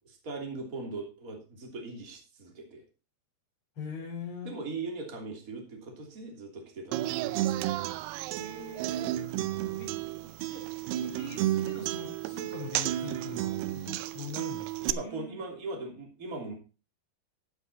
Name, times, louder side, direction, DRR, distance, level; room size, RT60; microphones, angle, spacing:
voice 1, 0.0-2.8 4.4-7.3 14.8-16.5, right 3 dB, 25° right, 2 dB, 2.8 m, -40 dB
voice 2, 3.8-4.5 8.4-9.1 9.8-9.9 10.2-15.4, left 4 dB, 30° left, -3 dB, 5.0 m, -43 dB
Human voice / Acoustic guitar, 6.9-14.9, right 14 dB, 80° right, 2.5 m, -32 dB
13.5 x 8.4 x 4.1 m, 0.32 s
omnidirectional pair, 5.0 m